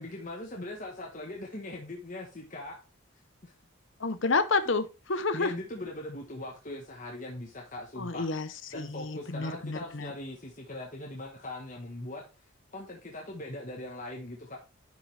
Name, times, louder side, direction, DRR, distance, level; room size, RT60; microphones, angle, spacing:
voice 1, 0.0-2.8 3.4-3.5 4.6-4.8 5.3-12.3 12.7-14.6, left 1 dB, 40° left, -1 dB, 1.3 m, -40 dB
voice 2, 4.0-5.5 8.0-8.5 8.7-10.1, left 3 dB, 60° left, 12 dB, 0.8 m, -29 dB
10.5 x 5.4 x 3.3 m, 0.30 s
head